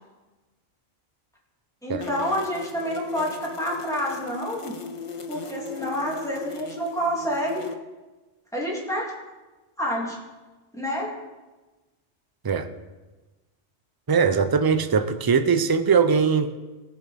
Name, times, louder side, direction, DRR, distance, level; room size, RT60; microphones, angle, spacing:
voice 1, 1.8-4.7 5.3-7.7 8.5-9.1 9.8-10.2 10.7-11.1, equal, 5° left, -4 dB, 2.5 m, -28 dB
sound 1, 2.0-7.7, left 4 dB, 35° left, 0.6 m, -37 dB
voice 2, 14.1-16.5, right 6 dB, 30° right, 9 dB, 0.4 m, -21 dB
18.0 x 7.0 x 4.3 m, 1.2 s
omnidirectional pair, 1.2 m